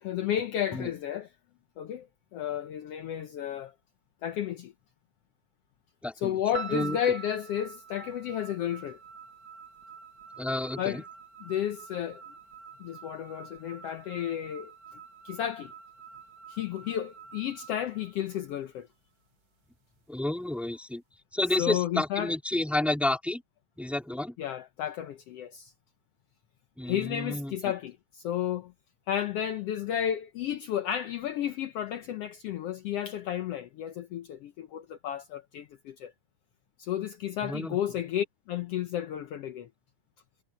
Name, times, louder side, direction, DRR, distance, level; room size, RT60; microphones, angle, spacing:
voice 1, 0.0-1.3 1.8-2.1 2.3-3.7 4.2-4.7 6.2-9.0 10.8-11.0 11.5-12.2 12.8-14.7 15.2-15.7 16.5-18.9 21.6-22.3 24.4-25.7 26.8-28.7 29.1-36.1 36.8-39.7, left 10 dB, 80° left, 1.3 m, -32 dB
voice 2, 6.0-6.4 6.7-7.0 10.4-11.0 20.1-21.0 21.3-23.4 23.8-24.4 26.8-27.7 37.4-37.8, left 1 dB, ahead, 2.2 m, -30 dB
sound 1, 6.5-18.8, right 6 dB, 40° right, 2.3 m, -46 dB
omnidirectional pair, 3.9 m